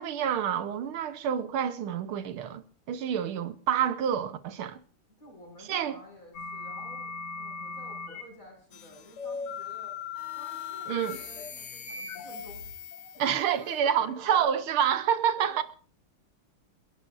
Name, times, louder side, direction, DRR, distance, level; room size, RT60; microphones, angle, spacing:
voice 1, 0.0-4.8 5.7-6.0 10.9-11.2 13.2-15.6, right 9 dB, 75° right, 1.8 m, -28 dB
voice 2, 5.2-10.0 10.3-12.6 13.1-14.5 15.4-15.6, left 1 dB, 35° left, 7.0 m, -50 dB
sound 1, 6.3-8.2 9.2-13.2, left 5 dB, 90° left, 3.0 m, -38 dB
sound 2, 8.7-9.6 10.1-13.8, left 9 dB, 70° left, 1.7 m, -46 dB
29.5 x 11.0 x 2.6 m
omnidirectional pair, 2.3 m